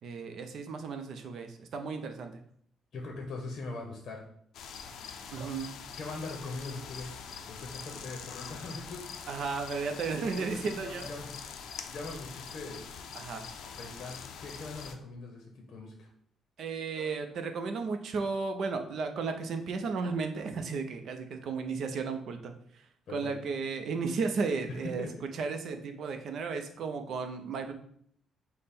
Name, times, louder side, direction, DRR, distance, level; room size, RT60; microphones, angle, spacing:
voice 1, 0.0-2.4 5.3-5.7 9.3-11.1 13.1-13.5 16.6-25.1 25.3-27.7, right 4 dB, 50° right, 6 dB, 0.5 m, -34 dB
voice 2, 2.9-4.2 6.0-7.2 7.5-9.0 10.3-11.4 11.6-12.8 13.6-16.1 23.1-23.3 25.0-25.1, left 3 dB, 45° left, 1 dB, 0.8 m, -41 dB
sound 1, 4.5-14.9, left 6 dB, 70° left, 0.4 m, -44 dB
5.3 x 2.1 x 4.2 m, 0.65 s
cardioid pair, 170°, 0 cm